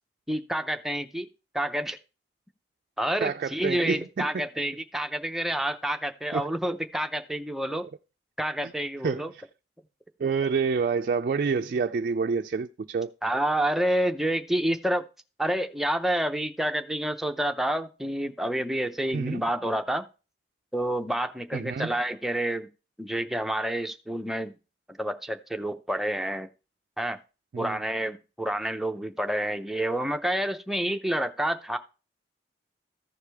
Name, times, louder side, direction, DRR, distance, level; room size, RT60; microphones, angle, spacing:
voice 1, 0.3-1.3 1.5-2.0 3.0-7.8 8.4-9.3 13.2-15.0 15.4-20.0 20.7-22.7 23.0-24.5 25.0-26.5 27.0-27.2 27.6-31.8, right 1 dB, ahead, 0.6 m, -28 dB
voice 2, 3.2-4.5 6.3-6.5 8.6-8.7 9.0-9.4 10.2-13.1 19.1-19.4 21.5-21.9 27.5-27.8, right 5 dB, 50° right, 0.3 m, -28 dB
14.5 x 4.9 x 3.4 m
head